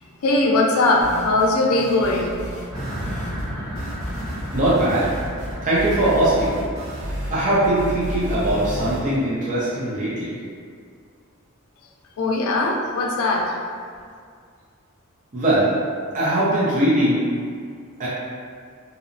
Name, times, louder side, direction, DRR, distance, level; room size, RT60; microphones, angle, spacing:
voice 1, 0.2-2.4 12.2-13.5, left 2 dB, 80° left, 0 dB, 0.4 m, -20 dB
sound 1, 1.0-1.5 1.8-3.5 3.8-9.0, equal, 70° right, 0.8 m, -32 dB
sound 2, 2.7-10.2, equal, 90° right, 1.1 m, -36 dB
voice 2, 4.5-5.1 5.6-6.6 7.3-10.3 15.3-15.7 16.1-17.3 18.0-18.1, right 1 dB, 35° right, -9 dB, 0.5 m, -20 dB
2.8 x 2.0 x 2.5 m, 2.1 s
head